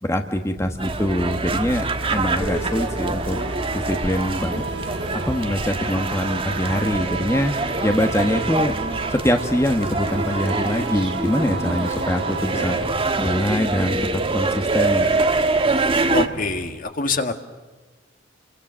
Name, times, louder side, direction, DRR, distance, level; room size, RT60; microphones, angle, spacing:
voice 1, 0.0-3.4 3.7-4.7 5.1-7.6 7.8-8.7 9.1-12.8 13.2-15.1, equal, 15° left, 5 dB, 1.4 m, -23 dB
Purr, 0.6-16.7, equal, 70° right, 4.4 m, -40 dB
sound 1, 0.8-16.3, right 3 dB, 30° right, 1.4 m, -25 dB
sound 2, 2.2-12.8, right 3 dB, 85° right, 7.6 m, -32 dB
voice 2, 16.1-17.3, left 3 dB, 50° left, 7 dB, 1.9 m, -24 dB
29.5 x 24.0 x 6.4 m, 1.3 s
head